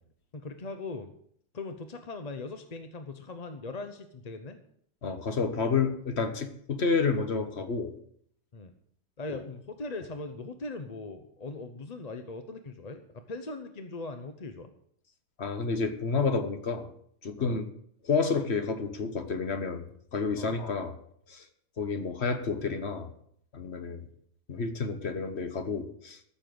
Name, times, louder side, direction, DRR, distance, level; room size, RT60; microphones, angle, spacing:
voice 1, 0.3-1.1 1.5-4.6 8.5-8.7 9.2-13.0 13.3-14.7 17.4-17.6 20.4-20.5, left 3 dB, 35° left, 7 dB, 0.8 m, -40 dB
voice 2, 5.0-7.9 9.3-9.4 15.4-16.9 17.2-17.6 18.0-19.8 20.1-20.9 21.3-21.4 21.8-23.1 23.5-24.0 24.5-26.2, left 4 dB, 50° left, 8 dB, 1.4 m, -30 dB
14.0 x 6.7 x 7.8 m, 0.66 s
omnidirectional pair, 1.5 m